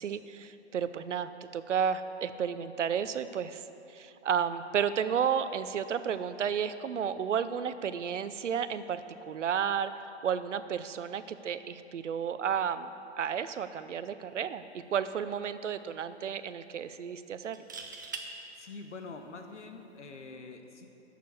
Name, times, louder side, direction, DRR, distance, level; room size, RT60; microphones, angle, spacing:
voice 1, 0.0-9.0 9.3-9.9 10.2-12.9 13.2-17.6, right 7 dB, 85° right, 12 dB, 0.7 m, -32 dB
sound 1, 14.6-14.8 15.2-15.3 17.4-18.3 20.1-20.3, right 4 dB, 20° right, 0.3 m, -41 dB
voice 2, 18.6-20.9, left 3 dB, 80° left, 5 dB, 1.3 m, -45 dB
9.5 x 6.8 x 7.7 m, 2.9 s
hypercardioid pair, 140°, 35 cm